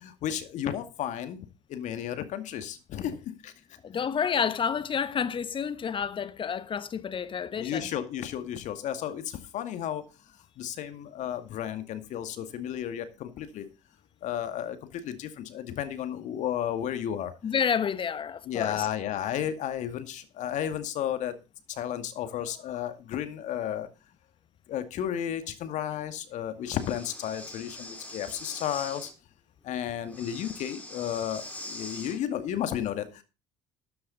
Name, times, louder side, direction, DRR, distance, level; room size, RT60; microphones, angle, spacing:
voice 1, 0.0-3.5 7.6-10.0 10.6-13.7 14.2-17.3 18.5-21.3 21.7-23.9 24.7-29.1 29.6-33.2, left 10 dB, 55° left, 2.1 m, -33 dB
voice 2, 3.8-7.9 17.4-18.9, left 7 dB, 35° left, 1.3 m, -29 dB
Breathing, 26.6-29.1 30.1-32.2, left 1 dB, 10° left, 4.6 m, -43 dB
13.0 x 9.5 x 4.1 m
hypercardioid pair, 65°, 15 cm